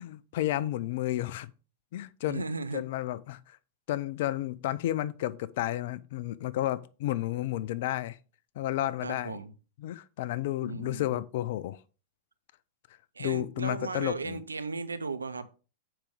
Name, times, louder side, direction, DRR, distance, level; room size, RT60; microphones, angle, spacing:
voice 1, 0.0-1.5 1.9-2.4 2.7-3.6 3.9-8.2 8.6-9.4 9.8-11.8 13.2-14.4, left 14 dB, 60° left, 0.5 m, -32 dB
voice 2, 2.3-2.8 9.0-9.5 10.6-11.1 13.2-15.5, right 3 dB, 85° right, 0.7 m, -36 dB
7.4 x 5.1 x 4.8 m
hypercardioid pair, 100°, 0 cm